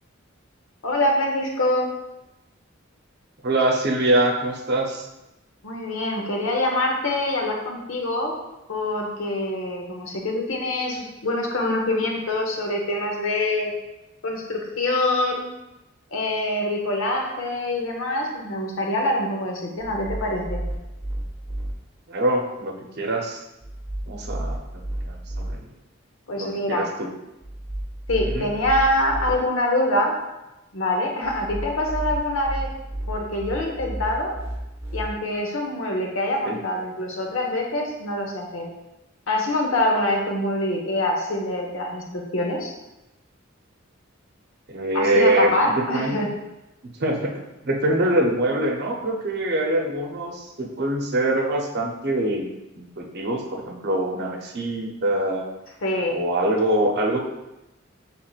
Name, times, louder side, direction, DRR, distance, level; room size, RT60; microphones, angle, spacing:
voice 1, 0.8-1.9 5.6-8.4 8.7-13.7 14.2-15.5 16.1-20.6 26.3-26.9 28.1-30.2 30.7-32.7 33.1-34.3 34.9-38.7 39.3-42.7 44.9-46.3 55.8-56.2, left 1 dB, 80° left, 1 dB, 0.9 m, -25 dB
voice 2, 3.4-5.1 22.1-23.4 24.1-25.6 26.4-27.1 28.2-28.5 36.4-36.6 44.7-46.2 46.8-52.5 52.8-55.5 56.1-57.2, right 1 dB, 55° right, 1 dB, 0.7 m, -24 dB
sound 1, 19.8-21.7 23.6-25.5 27.4-29.3 31.2-35.0, right 1 dB, 15° right, 0.8 m, -32 dB
5.9 x 3.6 x 2.4 m, 0.97 s
head